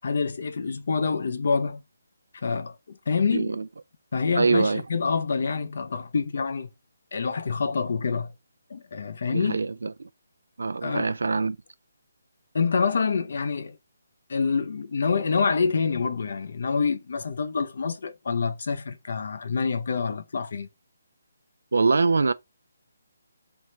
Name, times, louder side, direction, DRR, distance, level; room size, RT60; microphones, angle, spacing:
voice 1, 0.0-1.8 2.4-3.6 4.1-6.7 7.1-8.3 8.7-9.6 10.8-11.1 12.5-13.8 14.3-20.7, left 5 dB, 60° left, 0.6 m, -26 dB
voice 2, 3.3-3.7 4.4-4.8 9.3-10.1 10.6-11.6 21.7-22.3, right 4 dB, 75° right, 0.4 m, -24 dB
3.5 x 3.2 x 3.9 m
figure-of-eight pair, 155°, 0 cm